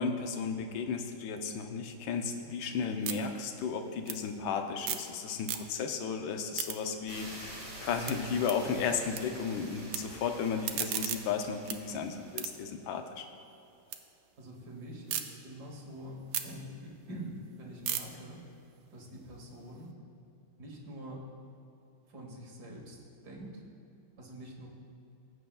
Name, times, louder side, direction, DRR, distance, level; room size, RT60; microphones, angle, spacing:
voice 1, 0.0-13.2, left 6 dB, 75° left, 5 dB, 1.4 m, -34 dB
sound 1, 2.2-5.1 5.4-6.0 6.3-9.2 9.5-10.0 10.4-14.0 14.4-15.2 15.7-19.8, right 10 dB, 75° right, 1.1 m, -40 dB
sound 2, 7.1-12.7, right 1 dB, 35° right, 2.0 m, -47 dB
voice 2, 14.4-18.4 18.9-19.9 20.6-21.3 22.1-23.0 23.2-23.6 24.2-24.7, equal, 50° right, -1 dB, 1.9 m, -45 dB
17.0 x 7.9 x 2.3 m, 2.8 s
omnidirectional pair, 2.3 m